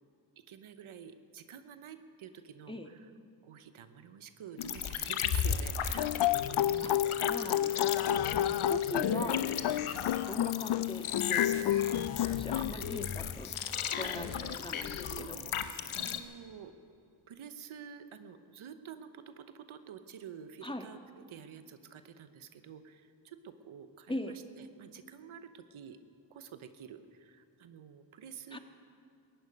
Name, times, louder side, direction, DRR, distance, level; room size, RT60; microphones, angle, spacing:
voice 1, 0.4-3.1 3.4-6.2 6.5-7.2 8.3-8.7 9.9-10.1 12.5-12.9 14.0-14.1 15.1-15.7 16.0-21.0 21.3-26.0 26.3-28.6, right 8 dB, 85° right, 10 dB, 0.9 m, -49 dB
sound 1, 4.6-16.2, left 8 dB, 85° left, 0.9 m, -35 dB
sound 2, 5.9-12.7, left 12 dB, 60° left, 0.5 m, -30 dB
voice 2, 7.3-8.0 8.7-9.5 10.0-13.5 13.8-15.4 20.6-20.8 24.1-24.3 28.5-28.6, left 1 dB, 10° left, 5 dB, 1.6 m, -41 dB
18.5 x 15.0 x 5.2 m, 2.5 s
cardioid pair, 40°, 48 cm